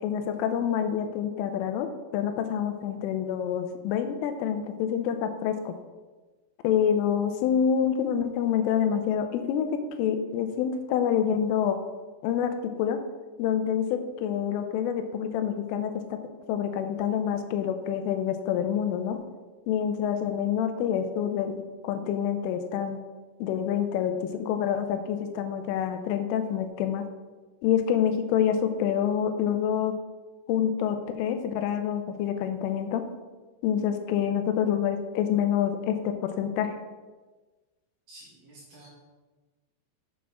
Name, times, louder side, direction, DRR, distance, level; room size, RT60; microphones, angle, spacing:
voice 1, 0.0-5.7 6.6-9.7 10.0-11.8 12.2-12.5 12.8-13.0 13.4-16.2 16.5-19.2 19.7-23.0 23.4-27.0 27.6-30.0 30.5-33.0 33.6-36.7, left 8 dB, 85° left, 7 dB, 3.2 m, -27 dB
voice 2, 38.1-38.9, right 1 dB, 60° right, -5 dB, 2.5 m, -50 dB
8.4 x 7.3 x 3.5 m, 1.3 s
omnidirectional pair, 5.6 m